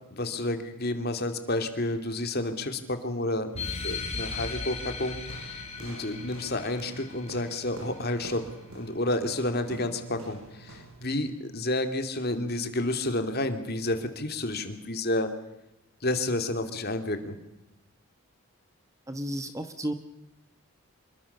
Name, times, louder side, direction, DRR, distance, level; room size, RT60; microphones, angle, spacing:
voice 1, 0.1-8.4 8.7-15.3 16.0-17.3, left 1 dB, 45° left, 7 dB, 2.6 m, -30 dB
sound 1, 3.5-8.6, left 4 dB, 30° left, 4.5 m, -38 dB
sound 2, 5.3-11.1, right 2 dB, 75° right, 7.3 m, -46 dB
voice 2, 19.1-19.9, right 1 dB, 15° right, 9 dB, 1.2 m, -32 dB
26.5 x 22.5 x 6.8 m, 0.92 s
head